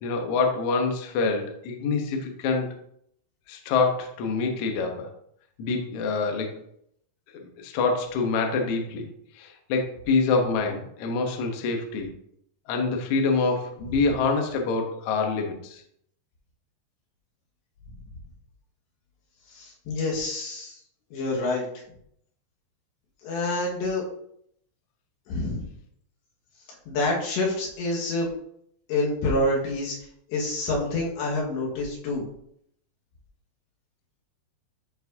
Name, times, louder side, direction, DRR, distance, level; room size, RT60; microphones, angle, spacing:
voice 1, 0.0-2.8 3.5-5.1 5.6-6.6 7.4-9.1 9.3-12.1 12.7-15.8, left 4 dB, 70° left, 3 dB, 1.8 m, -26 dB
voice 2, 19.5-20.7 21.1-21.7 23.2-24.0 25.3-25.7 26.9-28.3 28.9-30.0 30.3-32.3, left 2 dB, 90° left, -3 dB, 4.0 m, -27 dB
12.5 x 4.7 x 2.8 m, 0.70 s
omnidirectional pair, 4.9 m